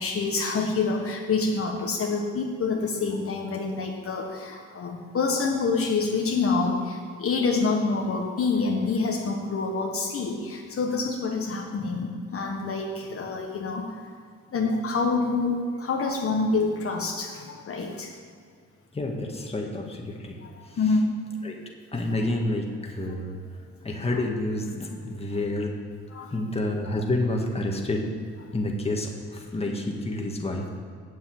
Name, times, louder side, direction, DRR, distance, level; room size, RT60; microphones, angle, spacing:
voice 1, 0.0-13.9 14.5-18.1 20.4-21.2 24.0-24.1 26.1-26.3, left 4 dB, 50° left, 0 dB, 1.4 m, -27 dB
voice 2, 18.9-20.4 20.6-20.8 21.4-21.6 21.9-23.4 23.8-25.7 26.3-28.0 28.5-30.7, left 1 dB, 20° left, 0 dB, 1.8 m, -29 dB
8.1 x 7.5 x 8.0 m, 2.2 s
cardioid pair, 90°, 30 cm